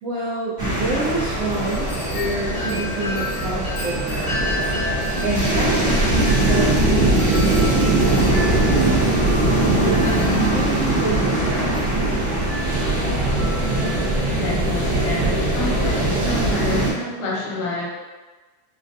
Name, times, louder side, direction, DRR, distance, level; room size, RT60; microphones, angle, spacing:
voice 1, 0.0-4.5 5.2-8.8 9.2-11.8, right 2 dB, 90° right, -9 dB, 0.7 m, -28 dB
sound 1, 0.6-16.9, right 2 dB, 50° right, 0.7 m, -21 dB
Wind chime, 0.9-14.4, left 1 dB, 40° left, 1.0 m, -33 dB
voice 2, 14.4-17.9, left 1 dB, 75° left, -4 dB, 1.6 m, -28 dB
3.6 x 2.2 x 2.6 m, 1.3 s
omnidirectional pair, 2.4 m